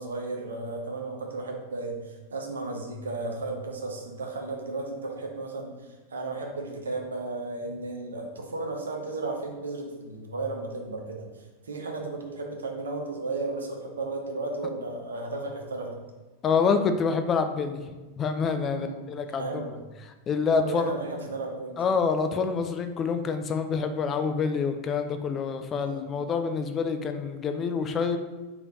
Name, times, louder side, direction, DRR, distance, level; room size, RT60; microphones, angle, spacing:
voice 1, 0.0-16.0 18.7-19.0 19.4-19.8 20.6-21.8 25.8-26.0, right 3 dB, 70° right, 1 dB, 0.7 m, -34 dB
voice 2, 16.4-17.8 18.2-19.5 20.3-20.9 21.8-28.2, left 5 dB, 25° left, 8 dB, 0.3 m, -27 dB
3.3 x 2.9 x 3.8 m, 1.2 s
figure-of-eight pair, 90°, 0 cm